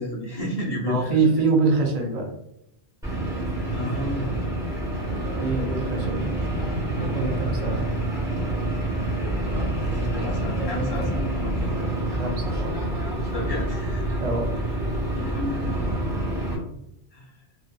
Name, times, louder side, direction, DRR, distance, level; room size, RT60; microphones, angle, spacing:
voice 1, 0.0-1.3 3.7-4.5 9.6-11.7 13.3-14.0 15.1-15.9 17.1-17.4, left 1 dB, 40° left, -6 dB, 0.8 m, -32 dB
voice 2, 0.8-2.3 5.4-6.3 6.9-7.9 12.0-12.8 14.2-14.5, right 4 dB, 50° right, 1 dB, 0.5 m, -25 dB
sound 1, 3.0-16.6, right 1 dB, 5° right, 0.7 m, -27 dB
2.5 x 2.4 x 2.2 m, 0.80 s
omnidirectional pair, 1.1 m